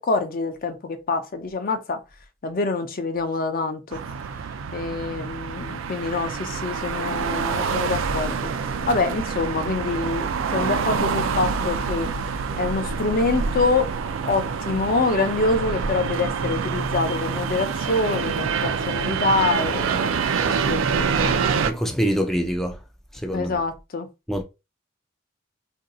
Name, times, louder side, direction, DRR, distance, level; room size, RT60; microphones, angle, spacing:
voice 1, 0.0-2.0 2.4-4.0 4.7-8.5 8.9-12.1 12.6-13.9 14.2-20.1 20.7-21.3 23.3-24.1, left 3 dB, 50° left, 0.5 m, -25 dB
sound 1, 3.9-21.7, right 5 dB, 80° right, 0.4 m, -26 dB
voice 2, 20.4-20.7 21.7-22.8 23.2-23.6 24.3-24.4, equal, ahead, 0.3 m, -25 dB
2.6 x 2.3 x 3.7 m
head